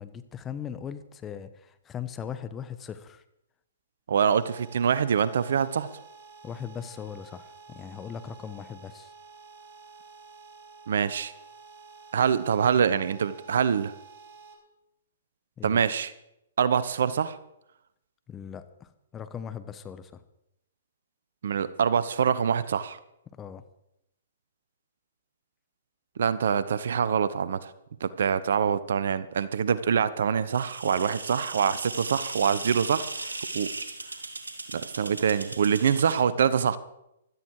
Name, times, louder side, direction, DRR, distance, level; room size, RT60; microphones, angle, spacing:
voice 1, 0.0-3.2 6.4-9.1 15.6-15.8 18.3-20.2 23.3-23.6, left 8 dB, 20° left, 11 dB, 1.1 m, -39 dB
voice 2, 4.1-5.9 10.9-11.3 12.1-13.9 15.6-16.1 16.6-17.4 21.4-23.0 26.2-27.7 28.0-33.7 34.7-36.8, right 7 dB, 65° right, 16 dB, 1.0 m, -25 dB
sound 1, 4.2-14.5, right 4 dB, 50° right, 4.2 m, -50 dB
sound 2, 30.5-36.2, right 2 dB, 85° right, 2.1 m, -37 dB
16.5 x 13.0 x 4.9 m, 0.83 s
figure-of-eight pair, 125°, 0 cm